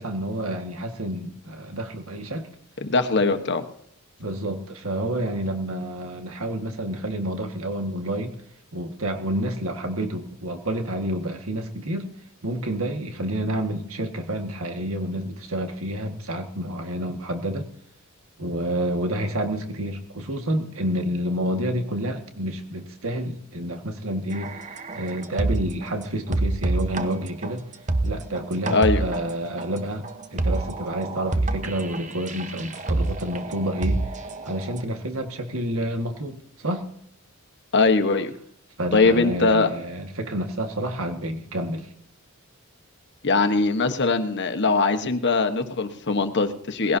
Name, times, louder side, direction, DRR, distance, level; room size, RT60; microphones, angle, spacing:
voice 1, 0.0-2.5 4.2-8.3 8.7-12.1 12.4-17.7 18.4-27.6 28.0-30.0 30.3-36.8 38.8-41.9, right 1 dB, 80° right, 4 dB, 1.8 m, -29 dB
voice 2, 2.8-3.6 28.7-29.0 37.7-38.3 38.9-39.7 43.2-47.0, left 3 dB, 55° left, 8 dB, 1.3 m, -21 dB
sound 1, 24.3-25.9 26.3-34.8, right 2 dB, 35° right, 1.1 m, -27 dB
19.5 x 16.5 x 2.8 m, 0.70 s
head